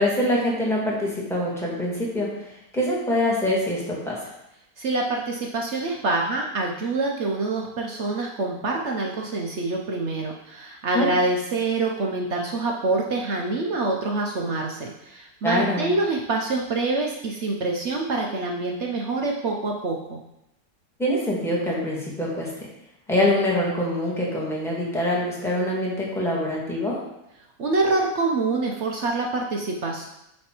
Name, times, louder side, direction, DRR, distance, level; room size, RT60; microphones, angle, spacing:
voice 1, 0.0-4.3 10.9-11.1 15.4-15.9 21.0-22.5 23.1-27.0, left 1 dB, ahead, -5 dB, 1.5 m, -24 dB
voice 2, 4.8-20.2 27.6-30.0, right 3 dB, 60° right, 0 dB, 0.7 m, -26 dB
8.6 x 3.3 x 4.4 m, 0.84 s
omnidirectional pair, 1.9 m